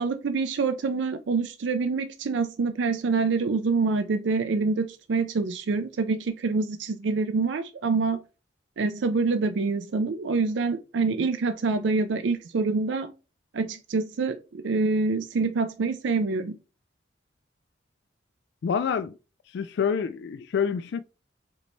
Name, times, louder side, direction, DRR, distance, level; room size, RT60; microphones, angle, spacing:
voice 1, 0.0-8.2 8.8-13.1 13.5-16.6, right 4 dB, 75° right, 0.4 m, -26 dB
voice 2, 18.6-19.2 19.5-21.0, left 6 dB, 65° left, 0.3 m, -27 dB
5.1 x 3.3 x 3.1 m
head